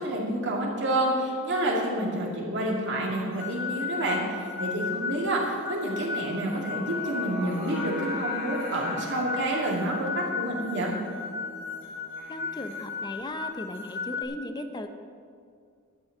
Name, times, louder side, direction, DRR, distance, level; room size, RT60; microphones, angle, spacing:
voice 1, 0.0-10.9, right 1 dB, 60° right, -2 dB, 2.5 m, -29 dB
sound 1, 3.4-14.2, left 5 dB, 60° left, 3.0 m, -35 dB
Singing, 6.1-13.2, left 2 dB, 80° left, 3.5 m, -42 dB
voice 2, 12.3-14.9, left 1 dB, 20° left, 7 dB, 0.6 m, -37 dB
11.5 x 6.2 x 9.0 m, 2.2 s
head